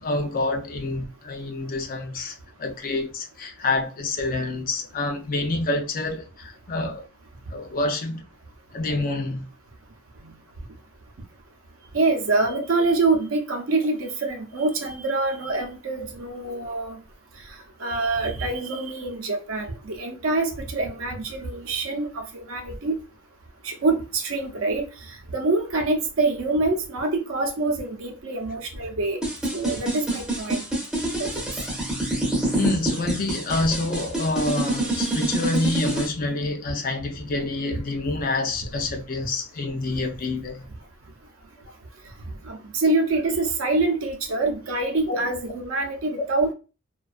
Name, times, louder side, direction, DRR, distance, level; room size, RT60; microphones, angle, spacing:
voice 1, 0.0-7.1 7.5-8.2 8.7-9.5 12.5-12.6 15.6-15.7 32.5-40.7 45.1-45.2, left 2 dB, 40° left, 0.4 m, -27 dB
voice 2, 11.9-17.0 17.8-23.0 23.6-29.2 29.5-30.6 31.3-31.4 34.8-35.3 42.3-46.5, right 3 dB, 65° right, 0.6 m, -25 dB
sound 1, 29.2-36.1, right 1 dB, 5° right, 0.6 m, -26 dB
2.4 x 2.3 x 2.3 m
head